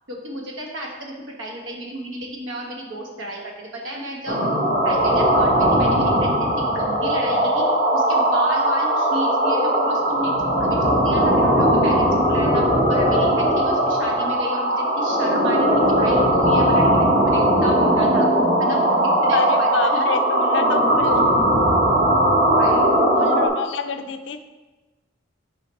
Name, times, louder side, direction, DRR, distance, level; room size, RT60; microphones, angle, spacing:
voice 1, 0.1-4.4 4.8-7.7 7.9-18.3 18.6-20.1 22.5-22.9, right 1 dB, 80° right, 0 dB, 1.2 m, -33 dB
sound 1, 4.3-23.5, right 1 dB, 35° right, 1.1 m, -19 dB
voice 2, 19.3-21.3 23.1-24.4, left 5 dB, 65° left, 9 dB, 0.4 m, -27 dB
6.4 x 4.8 x 3.2 m, 1.2 s
head